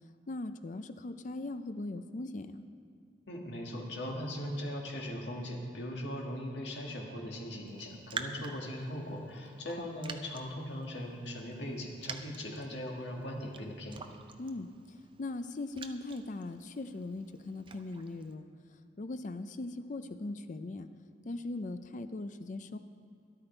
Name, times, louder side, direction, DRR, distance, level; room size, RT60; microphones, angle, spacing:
voice 1, 0.3-2.7 9.8-9.9 14.4-14.7 15.2-18.5 19.0-20.9 21.2-22.8, left 2 dB, 45° left, 10 dB, 0.5 m, -39 dB
voice 2, 3.3-14.0, equal, 75° left, 0 dB, 1.9 m, -39 dB
Raindrop, 7.7-18.3, right 5 dB, 30° right, 0.6 m, -48 dB
13.0 x 12.0 x 4.4 m, 2.5 s
head